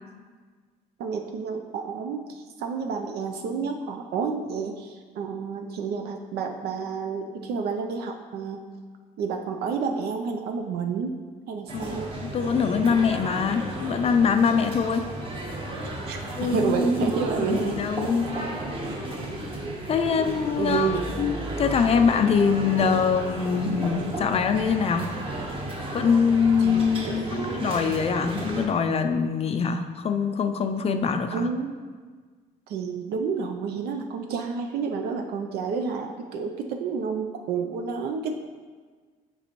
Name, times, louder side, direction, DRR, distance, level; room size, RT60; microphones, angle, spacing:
voice 1, 1.0-8.7 9.2-11.1 11.5-12.1 16.1-17.9 18.8-18.9 20.6-21.1 26.6-27.7 31.3-31.8 32.7-38.4, right 5 dB, 70° right, 4 dB, 0.5 m, -30 dB
voice 2, 11.7-15.1 16.4-17.1 17.4-18.4 19.9-25.1 25.9-31.5, left 6 dB, 35° left, 7 dB, 0.4 m, -24 dB
sound 1, 11.7-28.7, right 1 dB, 30° right, 1.1 m, -33 dB
7.0 x 5.2 x 3.0 m, 1.5 s
cardioid pair, 110°, 17 cm